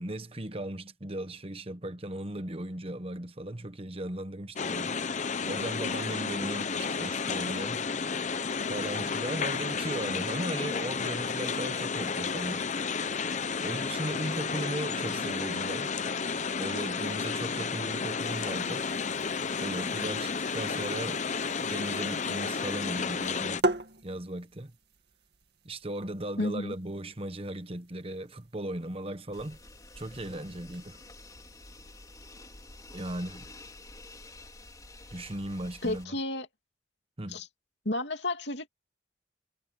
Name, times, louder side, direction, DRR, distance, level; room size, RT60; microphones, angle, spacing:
voice 1, 0.0-5.0 5.4-7.9 8.7-12.7 13.6-15.9 16.6-18.8 19.6-21.2 21.7-23.6 24.0-24.7 25.6-29.6 29.9-31.0 32.9-33.5 35.1-36.2 37.2-37.4, right 1 dB, 35° right, 1.2 m, -37 dB
sound 1, 4.6-23.6, left 5 dB, 40° left, 0.8 m, -32 dB
sound 2, 18.2-32.4, right 1 dB, 65° right, 2.3 m, -41 dB
voice 2, 26.4-26.7 35.8-36.5 37.3-37.5 37.8-38.7, left 1 dB, 75° left, 2.8 m, -31 dB
sound 3, 29.3-36.0, left 2 dB, 20° left, 3.8 m, -49 dB
head